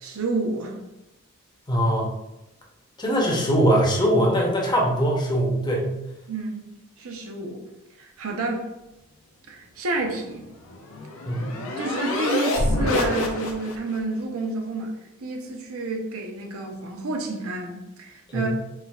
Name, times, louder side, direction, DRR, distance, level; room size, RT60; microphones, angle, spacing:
voice 1, 0.0-0.7 6.3-6.7 7.0-7.6 8.0-8.7 9.5-10.5 11.8-18.5, right 3 dB, 80° right, 1 dB, 0.6 m, -29 dB
voice 2, 1.7-2.1 3.0-5.9 11.3-11.5 18.3-18.5, equal, 20° left, -1 dB, 0.6 m, -21 dB
sound 1, 10.3-14.0, left 2 dB, 70° left, 0.5 m, -27 dB
4.4 x 2.3 x 2.2 m, 0.94 s
head